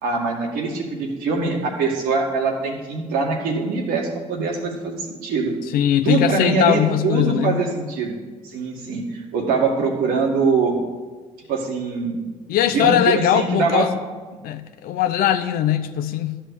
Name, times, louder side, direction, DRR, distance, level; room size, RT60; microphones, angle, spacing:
voice 1, 0.0-5.5 6.0-8.2 8.4-10.8 11.5-12.2 12.7-13.9, right 4 dB, 80° right, 2.0 m, -23 dB
voice 2, 5.7-7.6 12.5-13.9 14.4-16.4, left 10 dB, 75° left, 0.7 m, -20 dB
12.5 x 4.5 x 8.3 m
supercardioid pair, 60°, 15 cm